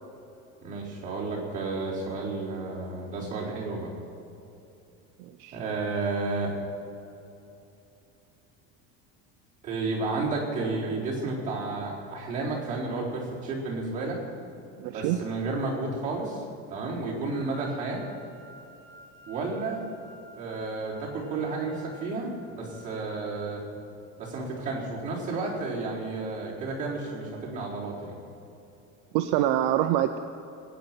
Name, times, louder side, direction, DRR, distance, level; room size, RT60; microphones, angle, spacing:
voice 1, 0.6-3.9 5.5-6.5 9.6-14.2 14.9-16.4 16.7-18.0 19.3-19.8 20.3-23.6 24.2-28.2, right 3 dB, 25° right, -7 dB, 4.0 m, -32 dB
voice 2, 5.2-5.6 14.8-15.2 29.1-30.2, right 12 dB, 60° right, 7 dB, 0.7 m, -25 dB
sound 1, 17.3-23.1, equal, 5° left, 1.9 m, -51 dB
21.0 x 9.2 x 5.9 m, 2.9 s
cardioid pair, 175°, 32 cm